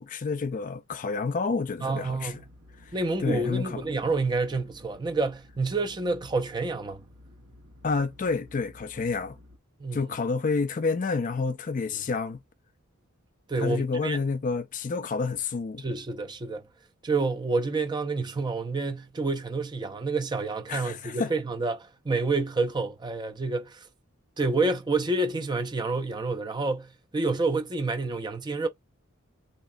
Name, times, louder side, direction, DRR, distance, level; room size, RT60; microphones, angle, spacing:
voice 1, 0.0-2.4 3.2-3.9 7.8-9.4 9.9-12.4 13.6-15.9 20.7-21.3, left 4 dB, 40° left, 0.4 m, -29 dB
voice 2, 1.8-2.5 2.9-7.0 9.8-10.0 13.5-14.2 15.8-16.6 17.0-23.9 24.4-28.7, right 3 dB, 20° right, 0.5 m, -28 dB
sound 1, 2.0-9.6, left 1 dB, 85° right, 1.3 m, -53 dB
3.5 x 2.8 x 2.6 m
head